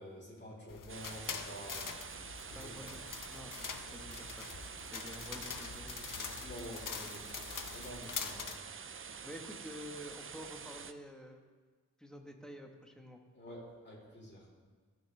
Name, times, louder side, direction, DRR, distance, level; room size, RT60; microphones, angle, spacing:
voice 1, 0.0-1.9 2.5-2.9 6.4-8.6 13.3-14.5, equal, 35° left, -6 dB, 3.1 m, -49 dB
sound 1, 0.7-8.6, left 6 dB, 70° left, 0.7 m, -44 dB
sound 2, 0.9-10.9, right 6 dB, 40° right, 0.4 m, -47 dB
voice 2, 2.5-3.0 3.3-4.6 4.9-6.4 9.2-11.4 12.0-13.2, equal, ahead, 2 dB, 1.1 m, -49 dB
15.0 x 6.1 x 3.2 m, 1.5 s
wide cardioid pair, 80°, 33 cm